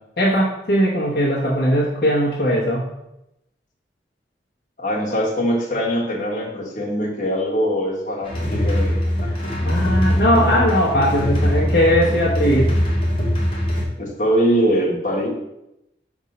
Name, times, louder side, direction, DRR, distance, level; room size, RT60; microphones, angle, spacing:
voice 1, 0.2-2.8 9.3-9.4 9.6-12.8, equal, 60° left, -6 dB, 1.1 m, -19 dB
voice 2, 4.8-9.7 10.3-10.5 14.0-15.3, equal, 45° left, -4 dB, 1.5 m, -22 dB
sound 1, 8.2-13.8, equal, 30° left, 1.2 m, -21 dB
5.2 x 3.6 x 5.4 m, 0.86 s
head